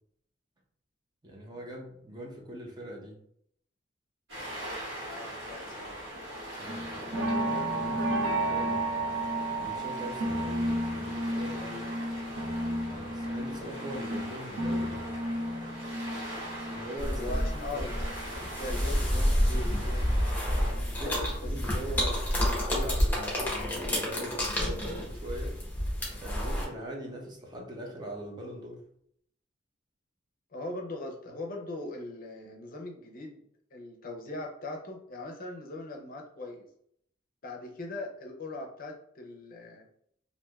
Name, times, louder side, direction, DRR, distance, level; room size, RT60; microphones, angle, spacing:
voice 1, 1.2-3.2 6.6-8.9 9.6-11.9 12.8-15.2 16.7-17.4 17.7-17.9 20.5-22.2 22.7-25.6 26.2-28.8, right 1 dB, 20° right, -1 dB, 0.6 m, -41 dB
sound 1, 4.3-20.7, equal, 65° right, 1.4 m, -42 dB
voice 2, 5.0-6.0 17.2-18.0 18.3-20.0 21.0-21.5 21.8-22.1 30.5-33.4 33.7-36.7 37.4-39.9, left 2 dB, 50° left, 1 dB, 0.5 m, -40 dB
sound 2, 6.7-18.8 19.2-20.8 21.2-21.5 21.8-21.9, right 1 dB, 85° right, 0.6 m, -33 dB
sound 3, 17.0-26.7, equal, 10° left, 0.9 m, -29 dB
3.2 x 2.5 x 2.3 m, 0.68 s
head